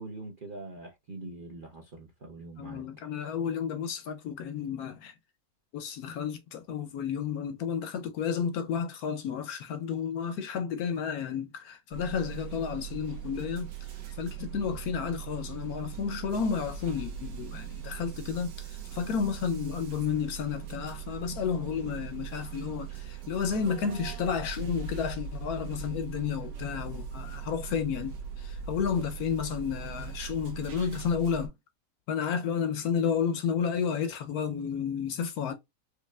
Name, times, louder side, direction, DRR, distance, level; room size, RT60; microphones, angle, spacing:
voice 1, 0.0-2.8, right 2 dB, 50° right, 0.6 m, -43 dB
voice 2, 2.6-5.1 5.7-13.7 14.2-31.5 32.1-35.5, left 7 dB, 70° left, 1.0 m, -32 dB
sound 1, 11.9-31.5, right 8 dB, 85° right, 1.6 m, -40 dB
4.7 x 2.8 x 2.3 m
omnidirectional pair, 1.8 m